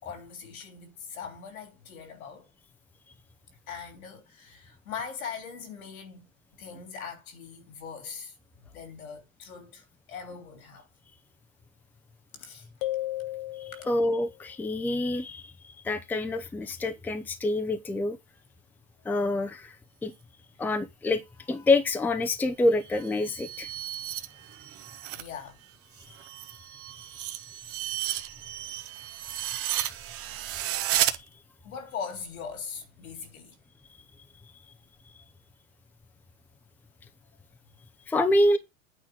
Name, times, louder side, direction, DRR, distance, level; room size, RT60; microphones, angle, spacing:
voice 1, 0.0-2.5 3.7-6.3 6.6-8.3 8.7-10.9 12.3-12.7 13.8-13.9 25.1-25.6 28.0-28.2 31.6-33.6, left 6 dB, 80° left, 3.2 m, -41 dB
sound 1, 12.8-14.3, left 16 dB, 45° left, 0.7 m, -34 dB
voice 2, 13.9-18.2 19.0-19.7 20.0-20.1 20.6-21.2 21.5-23.7 38.1-38.6, left 2 dB, 5° left, 0.7 m, -26 dB
sound 2, 22.9-25.3 25.6-31.2, right 13 dB, 35° right, 0.9 m, -33 dB
8.9 x 3.8 x 6.0 m
hypercardioid pair, 125°, 41 cm